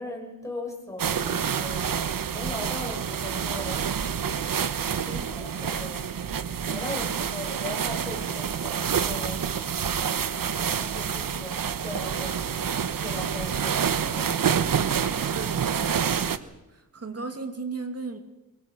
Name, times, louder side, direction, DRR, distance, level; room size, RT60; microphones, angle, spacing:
voice 1, 0.0-1.9 2.3-3.9 5.0-6.1 6.7-9.4 10.6-12.6 13.0-14.8, left 1 dB, 10° left, 0 dB, 6.3 m, -39 dB
sound 1, 1.0-16.4, right 7 dB, 75° right, 1.1 m, -28 dB
voice 2, 15.2-16.2 16.7-18.2, right 4 dB, 45° right, 7 dB, 2.5 m, -36 dB
24.0 x 22.0 x 6.4 m, 0.99 s
wide cardioid pair, 115°, 34 cm